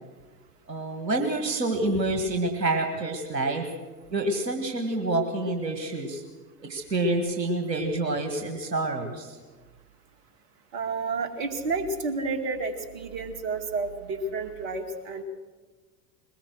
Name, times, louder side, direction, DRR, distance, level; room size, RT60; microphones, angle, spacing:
voice 1, 0.7-3.7 4.1-6.2 6.7-9.4, right 2 dB, 85° right, 4 dB, 1.9 m, -27 dB
voice 2, 10.7-15.2, right 3 dB, 55° right, 6 dB, 2.5 m, -30 dB
21.5 x 19.5 x 6.4 m, 1.3 s
figure-of-eight pair, 75°, 49 cm